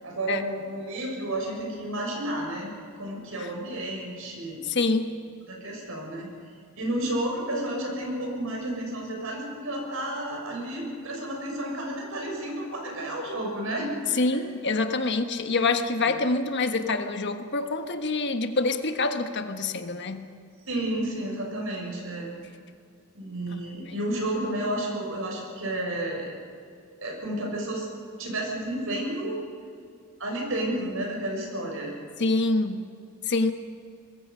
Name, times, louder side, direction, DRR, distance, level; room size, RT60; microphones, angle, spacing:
voice 1, 0.0-4.6 5.5-6.3 6.8-14.4 15.0-15.2 16.0-16.2 20.7-22.3 23.1-26.3 27.0-27.9 28.2-29.4 30.2-31.9, right 1 dB, 70° right, 0 dB, 6.6 m, -31 dB
voice 2, 4.6-5.1 14.2-20.3 23.5-23.8 32.2-32.8 33.3-33.5, left 3 dB, 55° left, 7 dB, 1.3 m, -26 dB
25.0 x 21.0 x 5.6 m, 2.4 s
head